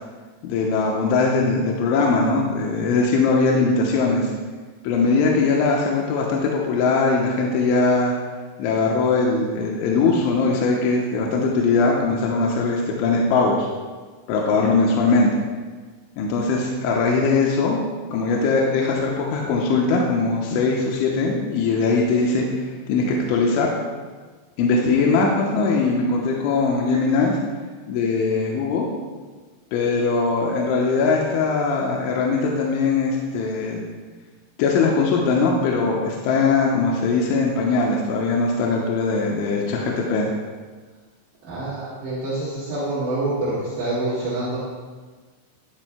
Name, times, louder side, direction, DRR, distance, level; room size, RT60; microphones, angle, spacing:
voice 1, 0.4-4.3 4.8-8.1 8.6-13.7 14.3-15.4 16.2-17.8 18.1-23.7 24.6-27.3 27.9-28.9 29.7-33.8 34.6-40.3, left 4 dB, 80° left, -2 dB, 3.1 m, -20 dB
voice 2, 41.4-44.6, right 2 dB, 65° right, -11 dB, 4.1 m, -26 dB
12.0 x 12.0 x 2.2 m, 1.4 s
omnidirectional pair, 5.7 m